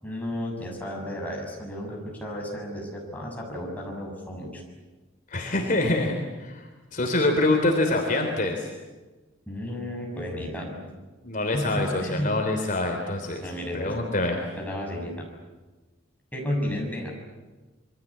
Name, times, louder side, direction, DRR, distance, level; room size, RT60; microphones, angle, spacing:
voice 1, 0.0-4.6 9.5-10.8 11.5-12.4 13.4-13.9 14.6-15.2 16.3-17.1, left 1 dB, 10° left, -1 dB, 6.9 m, -32 dB
voice 2, 5.3-8.7 11.2-14.4, left 2 dB, 40° left, 2 dB, 3.4 m, -25 dB
27.5 x 23.5 x 8.6 m, 1.2 s
head